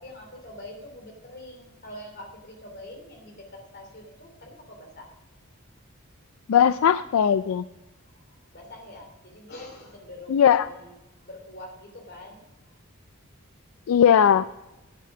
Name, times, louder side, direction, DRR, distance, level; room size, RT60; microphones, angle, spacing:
voice 1, 0.0-5.1 8.0-12.8, left 1 dB, 50° left, 3 dB, 2.9 m, -45 dB
voice 2, 6.5-7.6 10.3-10.7 13.9-14.5, left 8 dB, 75° left, 14 dB, 0.3 m, -18 dB
10.5 x 8.5 x 6.0 m, 0.99 s
head